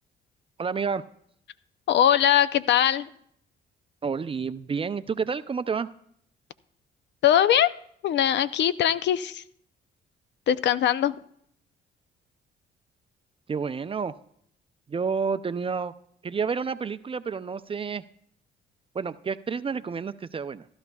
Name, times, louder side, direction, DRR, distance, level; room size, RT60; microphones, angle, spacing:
voice 1, 0.6-1.0 4.0-5.9 13.5-14.1 14.9-15.9 16.2-18.0 18.9-20.7, right 5 dB, 25° right, 13 dB, 0.4 m, -29 dB
voice 2, 1.9-3.1 7.2-7.7 8.0-9.4 10.5-11.2, left 10 dB, 65° left, 15 dB, 0.5 m, -21 dB
15.5 x 12.0 x 2.3 m, 0.66 s
cardioid pair, 90°, 20 cm